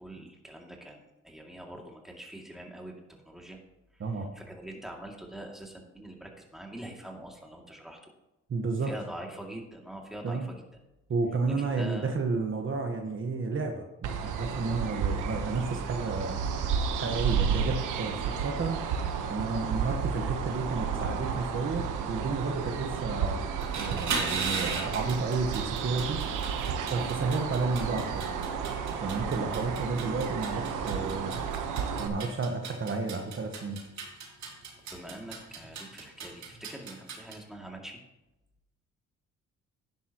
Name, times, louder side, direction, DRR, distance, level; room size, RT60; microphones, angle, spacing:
voice 1, 0.0-3.6 3.9-8.0 8.8-10.6 11.5-12.1 29.1-29.3 34.9-38.0, right 1 dB, ahead, 0 dB, 2.4 m, -44 dB
voice 2, 8.5-8.9 10.2-10.5 11.1-16.4 16.9-18.8 19.3-23.4 23.8-26.2 26.8-28.3 29.0-31.4 32.0-33.8, right 4 dB, 40° right, 3 dB, 1.3 m, -31 dB
sound 1, 14.0-32.1, right 6 dB, 85° right, 1.1 m, -32 dB
sound 2, 23.6-37.3, right 5 dB, 65° right, 3.0 m, -38 dB
12.0 x 10.0 x 3.0 m, 0.94 s
cardioid pair, 90°, 30 cm